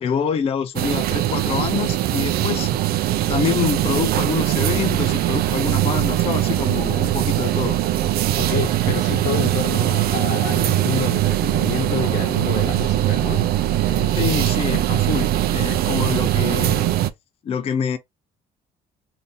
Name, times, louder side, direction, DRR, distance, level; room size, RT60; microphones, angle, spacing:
voice 1, 0.0-2.7 3.3-7.8 14.1-16.8 17.4-18.0, left 7 dB, 35° left, 0.4 m, -26 dB
sound 1, 0.8-17.1, right 13 dB, 65° right, 0.4 m, -21 dB
voice 2, 8.4-13.5 13.8-14.2 14.7-14.8, left 9 dB, 80° left, 0.9 m, -29 dB
2.7 x 2.6 x 3.6 m
cardioid pair, 110°, 17 cm